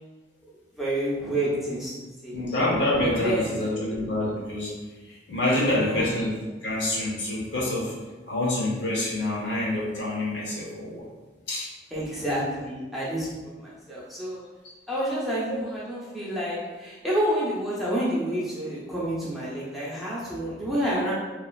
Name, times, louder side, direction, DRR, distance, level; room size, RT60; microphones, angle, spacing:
voice 1, 0.8-1.9 2.2-2.3 3.0-3.6 5.5-6.1 11.9-14.4 14.9-21.1, right 1 dB, ahead, -8 dB, 0.5 m, -29 dB
voice 2, 2.3-4.7 5.3-6.3 6.6-7.9 8.3-11.0 11.5-11.7 15.5-15.6, left 1 dB, 65° left, -5 dB, 0.8 m, -26 dB
3.0 x 2.3 x 2.3 m, 1.2 s
head